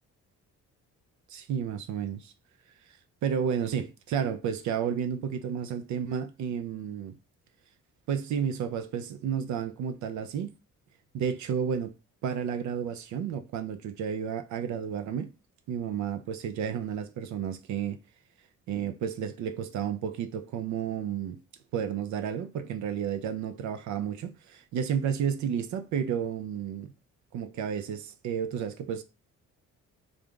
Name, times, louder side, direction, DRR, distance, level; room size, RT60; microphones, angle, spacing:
voice 1, 1.3-2.3 3.2-7.1 8.1-10.5 11.1-11.9 12.2-15.3 15.7-18.0 18.7-21.4 21.7-26.9 27.3-29.0, right 8 dB, 70° right, 0.5 m, -31 dB
3.4 x 2.5 x 3.6 m
cardioid pair, 90°, 30 cm